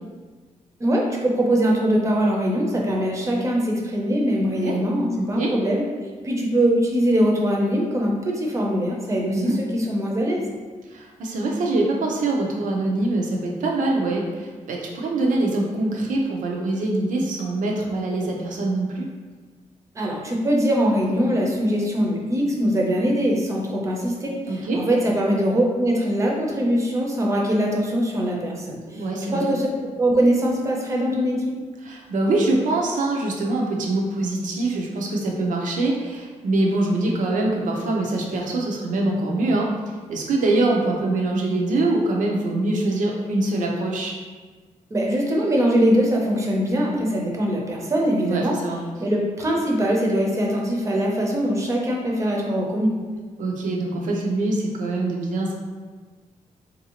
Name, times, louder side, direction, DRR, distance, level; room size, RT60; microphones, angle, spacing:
voice 1, 0.8-5.8 6.2-10.4 20.0-28.8 29.3-29.7 30.0-31.6 44.9-48.6 49.0-52.9, equal, 25° right, -1 dB, 0.6 m, -22 dB
voice 2, 4.4-4.8 5.1-5.5 9.3-9.6 10.9-19.1 24.5-24.8 28.9-29.5 31.8-39.7 40.1-44.1 48.3-48.8 53.4-55.5, right 2 dB, 90° right, -1 dB, 0.6 m, -24 dB
3.9 x 2.6 x 2.8 m, 1.4 s
wide cardioid pair, 155°, 13 cm